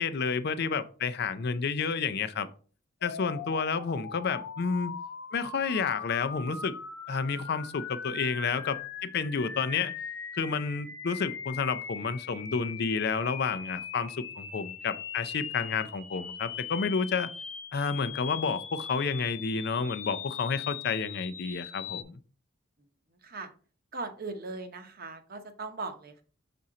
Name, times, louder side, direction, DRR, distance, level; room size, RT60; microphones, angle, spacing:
voice 1, 0.0-2.5 3.0-4.9 5.3-6.7 7.1-8.8 9.0-9.9 10.4-17.3 17.7-22.2, left 5 dB, 55° left, 0.5 m, -30 dB
sound 1, 3.0-22.0, left 7 dB, 85° left, 0.9 m, -40 dB
voice 2, 23.9-26.2, right 3 dB, 50° right, 0.8 m, -39 dB
6.1 x 4.2 x 3.8 m
head